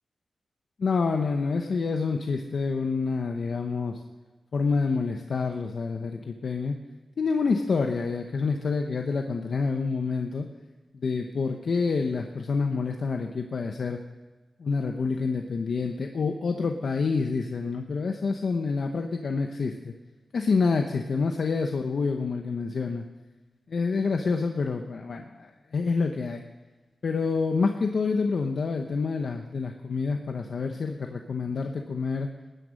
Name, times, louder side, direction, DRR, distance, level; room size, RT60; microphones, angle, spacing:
voice 1, 0.8-4.0 4.5-6.8 7.2-10.5 10.9-14.0 14.6-19.9 20.3-23.0 23.7-26.4 27.0-32.3, left 4 dB, 60° left, 4 dB, 0.9 m, -27 dB
19.5 x 10.0 x 6.4 m, 1.3 s
wide cardioid pair, 155°, 0 cm